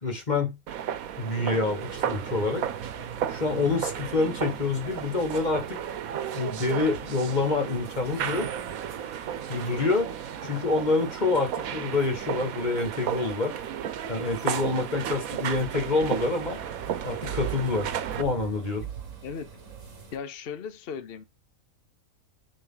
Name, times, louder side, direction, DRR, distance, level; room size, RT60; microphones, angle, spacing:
voice 1, 0.0-0.6 1.2-2.6 3.3-5.8 6.3-8.6 9.5-10.1 10.4-13.5 14.1-16.6 17.0-18.9, left 3 dB, 30° left, 1.8 m, -27 dB
sound 1, 0.7-18.2, right 9 dB, 90° right, 1.2 m, -34 dB
sound 2, 1.8-20.2, right 7 dB, 65° right, 2.0 m, -44 dB
voice 2, 20.1-21.2, left 6 dB, 50° left, 1.0 m, -37 dB
9.9 x 3.3 x 3.9 m
omnidirectional pair, 1.5 m